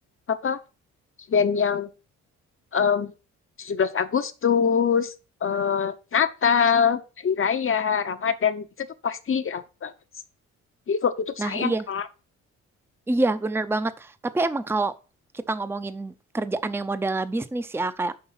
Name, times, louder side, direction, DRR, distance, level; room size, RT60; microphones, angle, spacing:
voice 1, 0.3-0.6 1.3-1.9 2.7-3.1 3.6-5.1 5.4-9.9 10.9-12.0, left 6 dB, 45° left, 0.8 m, -24 dB
voice 2, 11.4-11.9 13.1-14.9 15.3-18.2, right 2 dB, 10° right, 0.6 m, -27 dB
5.8 x 5.3 x 5.7 m
supercardioid pair, 70°, 31 cm